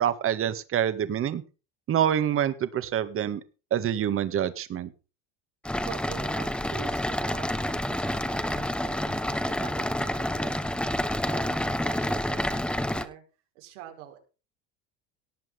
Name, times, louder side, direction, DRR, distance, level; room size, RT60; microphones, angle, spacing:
voice 1, 0.0-1.4 1.9-3.4 3.7-4.9, right 10 dB, 40° right, 13 dB, 1.7 m, -26 dB
sound 1, 5.6-13.0, left 1 dB, 5° left, 1.2 m, -28 dB
voice 2, 5.8-13.2 13.5-14.2, right 11 dB, 85° right, 4 dB, 4.7 m, -45 dB
18.0 x 7.6 x 5.4 m, 0.34 s
supercardioid pair, 120°, 34 cm